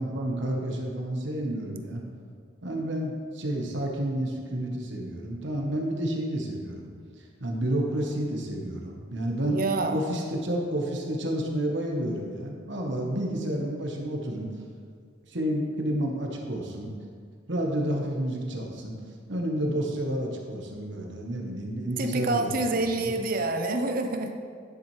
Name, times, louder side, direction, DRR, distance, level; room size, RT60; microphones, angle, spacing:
voice 1, 0.0-2.0 2.6-6.9 7.2-9.6 9.9-14.5 15.3-16.9 17.5-19.0 19.3-23.1, right 1 dB, 65° right, 0 dB, 1.2 m, -30 dB
voice 2, 9.5-10.0 22.0-24.3, right 2 dB, 45° right, 6 dB, 0.6 m, -27 dB
10.5 x 7.3 x 3.2 m, 2.1 s
head